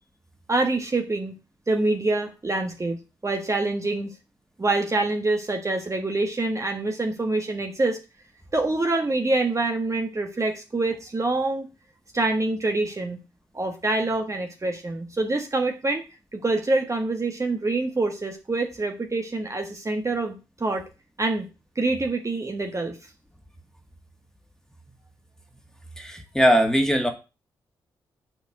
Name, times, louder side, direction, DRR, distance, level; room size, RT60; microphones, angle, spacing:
voice 1, 0.5-1.3 1.7-3.0 3.2-4.1 4.6-8.0 8.5-11.7 12.1-13.2 13.5-16.0 16.3-20.8 21.2-21.5 21.7-23.0, right 2 dB, 30° right, 4 dB, 1.6 m, -25 dB
voice 2, 26.0-27.1, equal, 5° left, 4 dB, 2.1 m, -20 dB
6.9 x 4.5 x 6.5 m, 0.30 s
hypercardioid pair, 40°, 10 cm